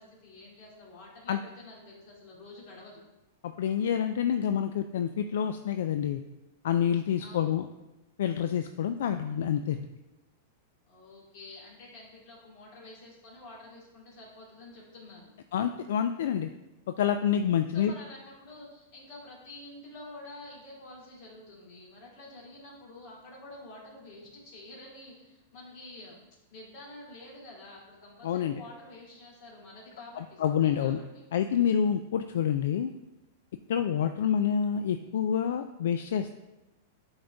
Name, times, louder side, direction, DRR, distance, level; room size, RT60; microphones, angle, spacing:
voice 1, 0.0-3.0 7.2-7.5 10.9-15.3 17.7-26.2 26.5-31.2, left 2 dB, 45° left, -4 dB, 2.4 m, -48 dB
voice 2, 3.4-6.2 6.6-7.7 8.2-9.9 15.5-16.5 17.0-17.9 28.2-28.6 30.2-31.0 31.3-32.9 33.7-36.4, left 8 dB, 75° left, 8 dB, 0.3 m, -27 dB
8.7 x 4.0 x 3.4 m, 1.0 s
supercardioid pair, 150°, 0 cm